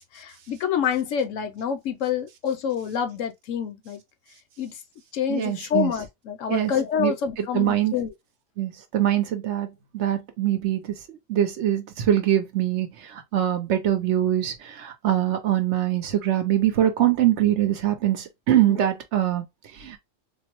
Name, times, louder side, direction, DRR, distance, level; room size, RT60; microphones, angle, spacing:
voice 1, 0.1-4.0 4.6-4.8 5.1-8.1 18.7-18.9, left 8 dB, 75° left, 1.0 m, -27 dB
voice 2, 5.3-5.9 6.5-6.7 7.0-7.1 7.4-7.9 8.6-9.7 9.9-19.5 19.7-20.0, right 12 dB, 65° right, 0.9 m, -23 dB
3.9 x 2.0 x 2.9 m
omnidirectional pair, 1.4 m